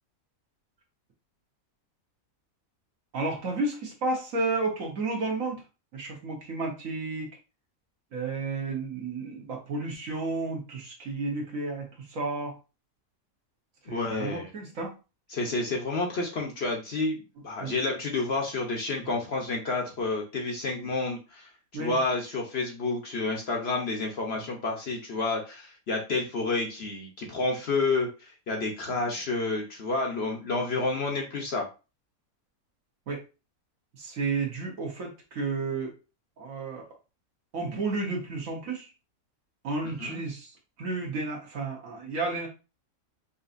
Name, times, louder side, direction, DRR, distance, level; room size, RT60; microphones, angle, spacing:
voice 1, 3.1-5.6 5.9-7.3 8.1-12.5 13.9-14.9 17.6-17.7 21.7-22.0 29.1-29.2 33.1-33.2 34.0-35.9 36.4-36.9 37.5-38.9 39.6-42.5, right 3 dB, 65° right, 0 dB, 1.6 m, -32 dB
voice 2, 13.9-14.5 15.3-21.5 21.8-28.1 28.5-31.7 40.0-40.2, left 3 dB, 50° left, 1 dB, 1.0 m, -29 dB
5.4 x 2.7 x 2.5 m, 0.31 s
omnidirectional pair, 1.5 m